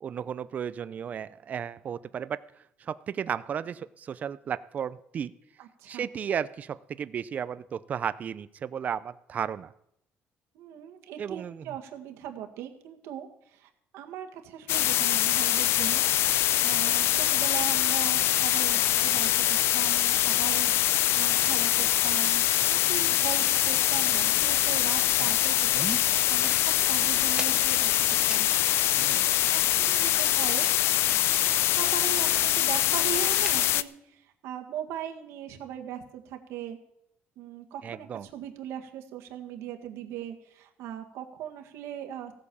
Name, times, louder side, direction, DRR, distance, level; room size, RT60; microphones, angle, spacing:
voice 1, 0.0-2.4 2.8-5.3 5.9-9.7 11.2-11.7 28.9-29.2 37.8-38.3, right 8 dB, 35° right, 15 dB, 0.5 m, -34 dB
voice 2, 5.6-6.1 10.5-16.0 16.6-28.5 29.5-30.7 31.6-36.8 37.4-42.3, right 10 dB, 85° right, 4 dB, 1.9 m, -39 dB
sound 1, 14.7-33.8, left 13 dB, 70° left, 0.5 m, -24 dB
sound 2, 18.6-31.5 31.9-32.1 32.4-32.5 32.9-33.6, right 3 dB, 15° right, 1.4 m, -45 dB
sound 3, 24.0-28.0, left 3 dB, 45° left, 4.0 m, -50 dB
16.0 x 8.5 x 7.0 m, 0.76 s
cardioid pair, 150°, 4 cm